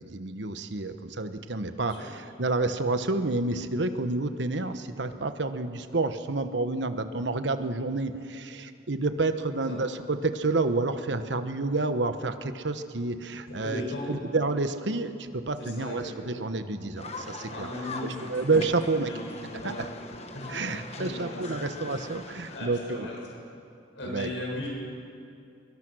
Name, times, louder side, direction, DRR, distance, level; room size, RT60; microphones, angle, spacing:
voice 1, 0.0-13.8 14.1-17.7 18.0-19.1 19.5-19.9 20.5-23.1 24.0-24.3, right 3 dB, 70° right, 9 dB, 1.1 m, -29 dB
voice 2, 1.8-2.1 9.7-9.8 13.5-14.2 15.6-16.5 17.5-18.3 18.9-19.9 20.3-20.5 20.9-21.7 21.9-22.0 22.5-23.4 23.9-24.7, left 1 dB, 75° left, -2 dB, 7.2 m, -37 dB
sound 1, 17.0-22.7, left 3 dB, 35° left, 1.4 m, -41 dB
24.5 x 22.0 x 6.3 m, 2.5 s
head